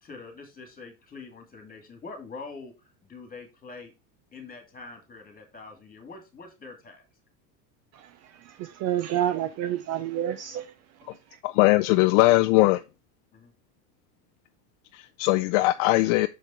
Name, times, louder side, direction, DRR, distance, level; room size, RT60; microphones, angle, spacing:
voice 1, 0.0-3.9 4.3-7.1 13.3-13.5, left 4 dB, 20° left, 2.4 m, -44 dB
voice 2, 7.9-10.7 11.0-11.4, right 11 dB, 35° right, 0.5 m, -30 dB
voice 3, 11.4-12.8 14.9-16.3, left 19 dB, 55° left, 0.5 m, -20 dB
6.4 x 5.3 x 4.3 m
supercardioid pair, 130°, 46 cm